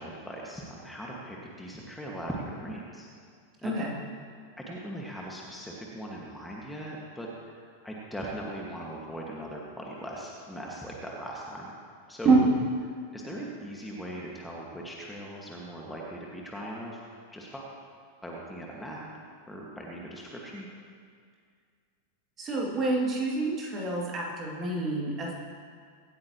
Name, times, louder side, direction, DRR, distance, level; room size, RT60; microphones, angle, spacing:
voice 1, 0.0-3.1 3.6-3.8 4.6-11.8 12.1-12.3 13.1-17.0 17.3-17.7 18.2-19.1 19.5-20.7, right 1 dB, 5° left, -3 dB, 2.0 m, -39 dB
voice 2, 3.6-3.9 12.2-12.5 22.4-25.3, right 3 dB, 25° right, -3 dB, 2.9 m, -26 dB
24.0 x 9.6 x 3.2 m, 2.1 s
figure-of-eight pair, 90°, 0 cm